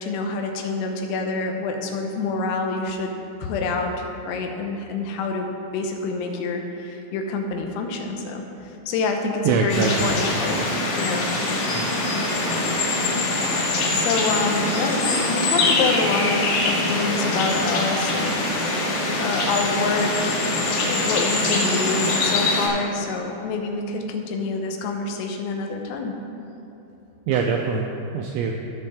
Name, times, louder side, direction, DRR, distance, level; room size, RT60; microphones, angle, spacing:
voice 1, 0.0-3.2 3.4-10.6 10.9-11.3 13.5-20.6 20.8-26.1, left 3 dB, 90° left, 3 dB, 3.6 m, -27 dB
voice 2, 9.4-10.1 11.7-11.9 13.9-14.0 27.3-28.5, right 5 dB, 90° right, 1 dB, 2.6 m, -24 dB
sound 1, 9.7-22.7, left 2 dB, 65° left, 3.4 m, -23 dB
16.0 x 6.3 x 3.5 m, 2.9 s
omnidirectional pair, 5.9 m